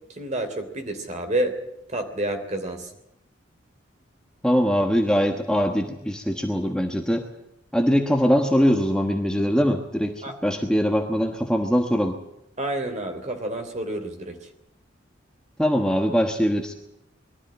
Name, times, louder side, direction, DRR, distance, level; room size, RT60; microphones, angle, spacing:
voice 1, 0.2-1.6 1.9-2.9 10.2-10.3 12.6-14.4, right 1 dB, 35° right, 5 dB, 3.1 m, -29 dB
voice 2, 4.4-7.2 7.7-12.2 15.6-16.7, equal, 5° left, 3 dB, 1.2 m, -22 dB
22.0 x 13.0 x 9.9 m, 0.86 s
head